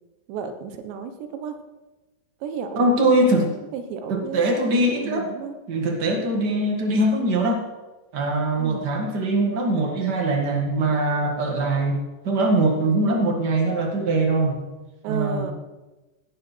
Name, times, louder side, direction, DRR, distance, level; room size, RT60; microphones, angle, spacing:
voice 1, 0.3-1.6 2.4-3.1 3.7-4.4 4.8-5.6 8.6-8.9 15.0-15.5, right 7 dB, 80° right, 8 dB, 3.3 m, -33 dB
voice 2, 2.7-3.5 4.1-5.3 5.7-7.6 8.1-12.0 12.2-14.6 15.1-15.4, right 2 dB, 45° right, 1 dB, 1.4 m, -22 dB
18.0 x 12.0 x 4.5 m, 1.1 s
omnidirectional pair, 5.1 m